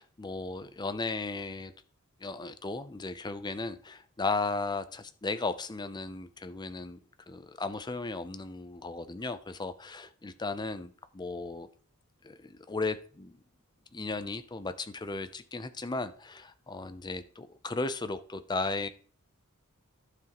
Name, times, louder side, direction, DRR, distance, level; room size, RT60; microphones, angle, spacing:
voice 1, 0.0-1.7 2.2-7.0 7.3-11.7 12.2-13.4 13.9-18.9, left 3 dB, 20° left, 11 dB, 0.5 m, -35 dB
11.5 x 7.1 x 3.0 m, 0.43 s
head